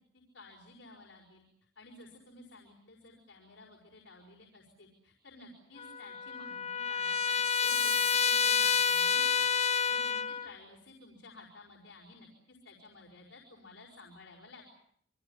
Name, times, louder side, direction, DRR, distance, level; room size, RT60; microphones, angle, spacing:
voice 1, 0.1-1.4 1.8-9.5 9.8-14.7, left 2 dB, 70° left, 0 dB, 5.4 m, -54 dB
Trumpet, 5.8-10.5, left 6 dB, 35° left, 1.5 m, -29 dB
29.0 x 24.5 x 7.2 m, 0.66 s
head